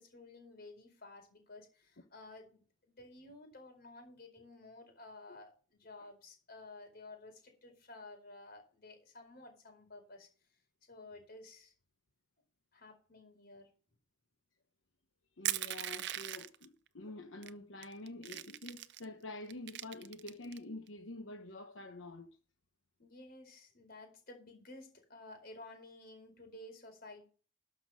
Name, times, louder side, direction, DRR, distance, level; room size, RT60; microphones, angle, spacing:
voice 1, 0.0-10.3 10.9-11.7 12.7-13.7 23.0-27.3, left 2 dB, 55° left, 4.6 m, -53 dB
voice 2, 15.4-22.4, left 2 dB, 85° left, 1.0 m, -47 dB
Crushing, 15.4-16.6 17.4-17.5 17.8-19.0 19.5-20.6, right 13 dB, 60° right, 0.5 m, -39 dB
12.5 x 6.1 x 6.4 m
head